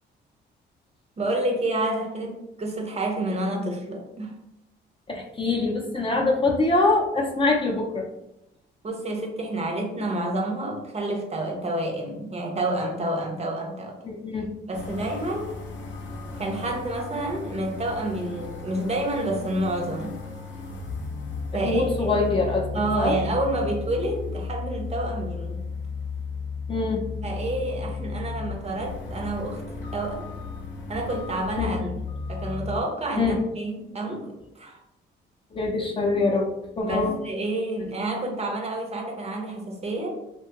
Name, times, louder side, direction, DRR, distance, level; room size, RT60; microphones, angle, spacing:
voice 1, 1.2-4.4 8.8-14.0 14.7-15.6 16.4-20.2 21.5-22.2 22.7-25.6 27.2-29.6 29.9-30.3 30.9-31.9 32.3-34.8 36.8-40.1, right 1 dB, 35° right, 1 dB, 0.6 m, -29 dB
voice 2, 5.1-8.1 14.0-14.5 21.6-22.7 23.0-23.1 26.7-27.0 31.6-31.8 33.1-33.4 35.5-36.5 36.8-37.2, left 3 dB, 25° left, 0 dB, 0.5 m, -24 dB
sound 1, 14.7-32.8, left 4 dB, 70° left, 0.6 m, -34 dB
2.7 x 2.2 x 2.8 m, 0.87 s
cardioid pair, 90°, 20 cm